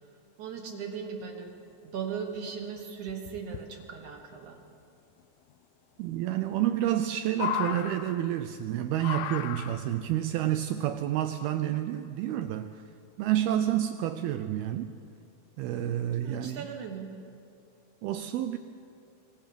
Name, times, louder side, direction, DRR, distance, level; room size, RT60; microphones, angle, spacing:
voice 1, 0.4-1.5 1.8-4.6 16.2-17.1, right 6 dB, 65° right, 4 dB, 2.1 m, -38 dB
sound 1, 2.0-2.1 2.4-2.5 3.1-3.6 5.2-5.3 6.5-7.0 7.3-8.5 9.0-10.0 11.0-11.1, left 10 dB, 85° left, 2.0 m, -35 dB
voice 2, 6.0-12.8 13.2-14.9 15.6-16.7 18.0-18.6, right 12 dB, 85° right, 9 dB, 2.2 m, -29 dB
25.5 x 24.5 x 5.2 m, 2.5 s
omnidirectional pair, 5.1 m